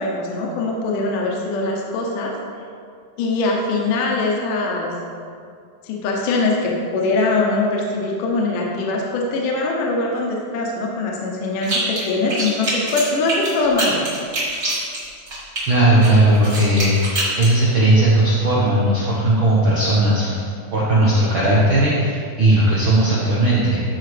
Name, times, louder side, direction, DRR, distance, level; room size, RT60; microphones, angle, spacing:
voice 1, 0.0-2.3 3.2-4.9 5.8-14.0, left 3 dB, 75° left, -2 dB, 2.3 m, -22 dB
sound 1, 11.6-12.0 12.3-15.6 16.0-17.5, right 2 dB, 35° right, 1.6 m, -25 dB
voice 2, 15.7-20.4 20.7-23.8, right 1 dB, 85° right, -7 dB, 1.1 m, -17 dB
13.0 x 4.7 x 3.3 m, 2.4 s
omnidirectional pair, 4.1 m